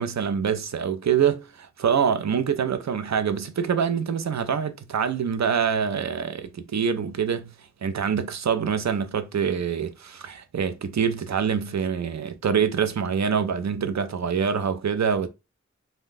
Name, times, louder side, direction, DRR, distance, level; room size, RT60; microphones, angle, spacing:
voice 1, 0.0-7.5 7.8-15.3, right 7 dB, 65° right, 0.5 m, -25 dB
2.6 x 2.2 x 3.6 m
wide cardioid pair, 40°, 30 cm